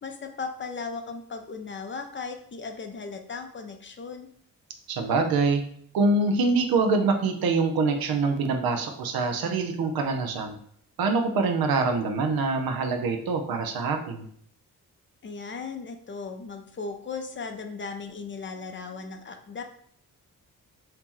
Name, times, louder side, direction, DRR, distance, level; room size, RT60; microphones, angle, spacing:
voice 1, 0.0-4.3 15.2-19.6, left 4 dB, 35° left, 6 dB, 0.5 m, -37 dB
voice 2, 4.9-5.6 5.9-10.6 11.0-14.3, right 3 dB, 90° right, 5 dB, 0.6 m, -25 dB
3.0 x 2.8 x 3.6 m, 0.63 s
cardioid pair, 85°, 35 cm